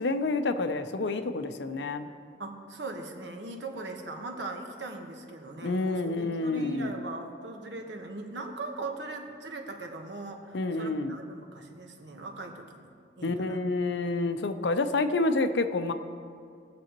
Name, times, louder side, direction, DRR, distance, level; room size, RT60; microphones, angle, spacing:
voice 1, 0.0-2.1 5.6-6.9 10.5-11.2 13.2-15.9, left 3 dB, 70° left, 9 dB, 0.6 m, -28 dB
voice 2, 2.4-12.9 13.2-13.6, right 2 dB, 75° right, 3 dB, 1.1 m, -40 dB
18.0 x 6.9 x 3.0 m, 2.4 s
head